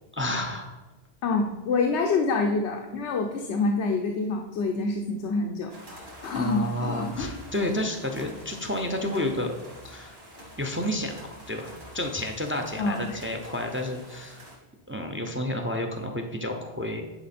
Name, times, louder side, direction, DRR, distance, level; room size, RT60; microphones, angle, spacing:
voice 1, 0.1-0.8 6.3-9.5 9.8-10.2 10.6-14.4 14.9-17.1, left 1 dB, 15° right, 4 dB, 0.5 m, -30 dB
voice 2, 1.2-7.3 12.8-13.2, left 3 dB, 90° left, 3 dB, 1.0 m, -27 dB
sound 1, 5.7-14.6, equal, 45° right, 2.3 m, -46 dB
10.0 x 4.9 x 4.2 m, 1.1 s
omnidirectional pair, 1.1 m